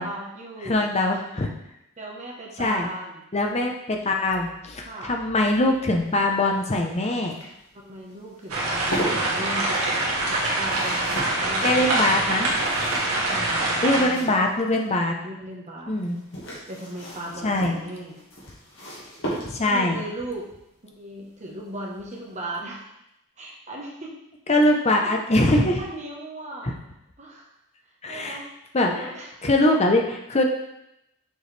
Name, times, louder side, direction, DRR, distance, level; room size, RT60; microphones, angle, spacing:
voice 1, 0.0-0.9 2.0-3.2 4.8-5.1 7.7-9.8 10.6-12.2 13.3-14.5 15.2-15.9 16.7-18.2 19.6-20.4 21.0-22.8 23.4-24.2 25.0-25.2 25.8-26.7 27.2-27.5 28.1-28.4 28.8-29.3, right 1 dB, 30° right, -2 dB, 1.1 m, -37 dB
voice 2, 0.6-1.5 2.6-2.9 3.3-7.4 11.6-12.5 13.8-15.2 15.9-16.2 17.4-17.8 19.4-20.0 24.5-25.8 26.6-26.7 28.0-28.4 28.7-29.1 29.4-30.4, left 1 dB, 30° left, 2 dB, 0.7 m, -22 dB
sound 1, 6.0-14.9 16.0-19.9 21.5-21.8 22.1-22.2, right 1 dB, 60° left, 1.8 m, -37 dB
sound 2, 8.5-14.0, right 2 dB, 75° right, 1.7 m, -24 dB
6.6 x 4.7 x 3.3 m, 0.83 s
head